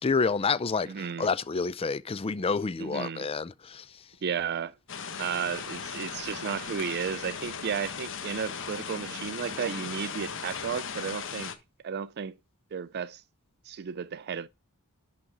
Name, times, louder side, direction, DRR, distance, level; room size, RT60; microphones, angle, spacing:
voice 1, 0.0-3.8, left 4 dB, 25° left, 0.4 m, -28 dB
voice 2, 0.9-1.3 2.8-3.3 4.2-4.7 5.2-11.5 11.8-12.4 12.7-13.2 13.6-14.5, right 7 dB, 50° right, 0.4 m, -33 dB
sound 1, 4.9-11.6, left 6 dB, 60° left, 1.2 m, -37 dB
11.0 x 3.9 x 5.0 m
head